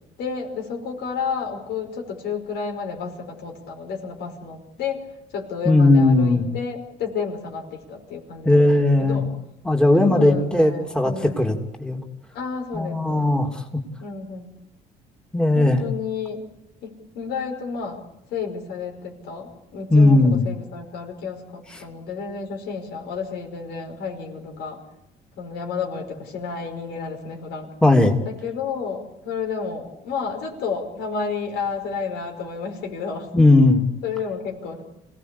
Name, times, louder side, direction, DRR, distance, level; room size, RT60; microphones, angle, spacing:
voice 1, 0.2-5.0 5.3-9.3 10.0-11.4 12.3-13.4 14.0-14.5 15.5-16.5 16.8-18.0 18.3-24.8 25.4-27.7 28.2-33.5 34.0-34.8, left 5 dB, 80° left, 2 dB, 5.4 m, -31 dB
voice 2, 5.6-6.4 8.4-9.2 9.6-11.5 11.8-12.0 12.7-13.6 15.3-15.8 19.9-20.4 27.8-28.1 33.3-33.8, left 2 dB, 5° left, 2 dB, 2.9 m, -17 dB
27.0 x 17.5 x 8.5 m, 0.89 s
cardioid pair, 110°, 17 cm